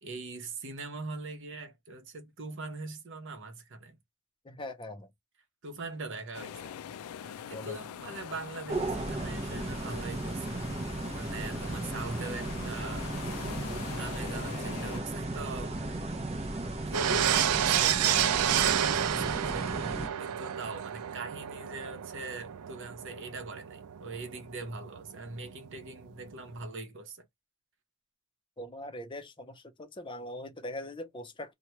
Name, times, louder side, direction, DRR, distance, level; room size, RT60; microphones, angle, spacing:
voice 1, 0.0-4.0 5.6-6.7 7.2-10.6 11.1-13.1 14.0-15.8 16.9-19.7 20.2-27.3, right 3 dB, 55° right, 0.8 m, -41 dB
voice 2, 4.4-5.1 7.5-7.8 11.8-11.9 28.6-31.5, left 1 dB, 20° left, 0.6 m, -41 dB
sound 1, 6.3-15.0, left 8 dB, 80° left, 0.3 m, -43 dB
sound 2, 8.7-20.1, right 2 dB, 30° right, 0.6 m, -35 dB
sound 3, 16.9-26.0 26.3-26.5, right 10 dB, 90° right, 0.4 m, -30 dB
3.0 x 2.2 x 2.9 m
head